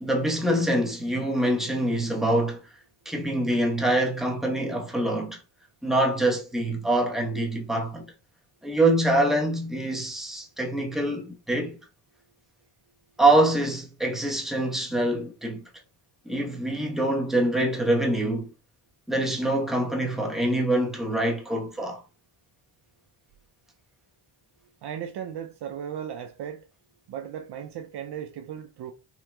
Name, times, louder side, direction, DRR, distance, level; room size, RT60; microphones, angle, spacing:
voice 1, 0.0-2.6 3.0-5.4 5.8-8.1 8.6-11.8 13.2-15.6 16.3-18.5 19.1-22.0, right 1 dB, ahead, 1.1 m, -25 dB
voice 2, 24.8-26.7 27.1-28.9, right 9 dB, 55° right, 0.5 m, -36 dB
3.8 x 2.8 x 2.3 m
supercardioid pair, 70°, 50 cm